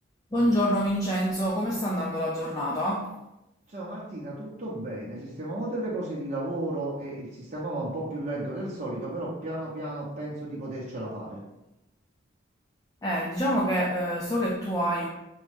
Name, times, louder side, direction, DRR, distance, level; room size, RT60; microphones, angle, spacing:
voice 1, 0.3-3.1 13.0-15.1, equal, 20° left, -3 dB, 0.4 m, -26 dB
voice 2, 3.7-11.4, right 1 dB, 40° right, -6 dB, 0.7 m, -34 dB
6.1 x 2.3 x 3.3 m, 0.92 s
head